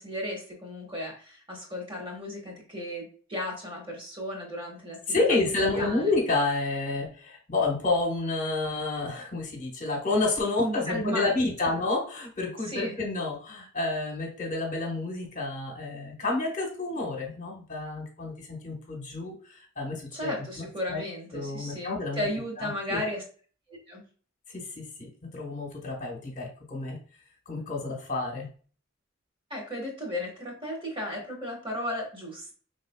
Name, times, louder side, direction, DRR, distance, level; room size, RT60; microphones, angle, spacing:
voice 1, 0.0-5.4 5.7-6.1 10.6-11.7 12.7-13.0 20.1-23.2 23.7-24.0 29.5-32.5, left 1 dB, 25° right, -1 dB, 1.4 m, -35 dB
voice 2, 5.1-21.0 21.3-22.3 22.6-23.0 24.5-27.0 27.5-28.5, left 3 dB, 40° left, 0 dB, 1.1 m, -30 dB
5.2 x 3.3 x 2.3 m, 0.41 s
head